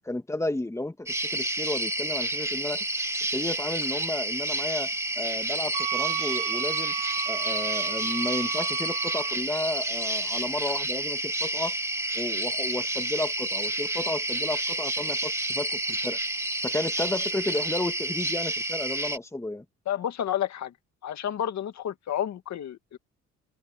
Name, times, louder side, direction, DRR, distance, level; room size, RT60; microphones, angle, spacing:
voice 1, 0.1-2.8 3.3-6.9 7.3-11.7 12.1-16.2 16.6-19.6, left 2 dB, 10° left, 2.0 m, -32 dB
sound 1, 1.1-19.2, right 1 dB, 10° right, 1.9 m, -30 dB
Wind instrument woodwind instrument, 5.7-9.4, right 18 dB, 90° right, 1.0 m, -33 dB
voice 2, 19.9-20.7 21.0-23.0, left 10 dB, 65° left, 1.8 m, -30 dB
cardioid pair, 90°, 30 cm